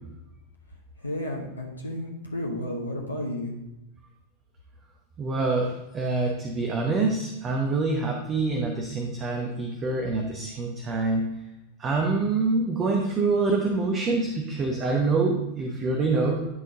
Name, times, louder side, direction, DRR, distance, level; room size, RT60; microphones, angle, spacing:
voice 1, 1.0-3.5, left 1 dB, 80° left, -1 dB, 1.0 m, -32 dB
voice 2, 5.2-11.3 11.8-16.5, right 3 dB, 25° right, 1 dB, 0.9 m, -26 dB
11.0 x 3.8 x 3.7 m, 0.93 s
figure-of-eight pair, 90°, 0 cm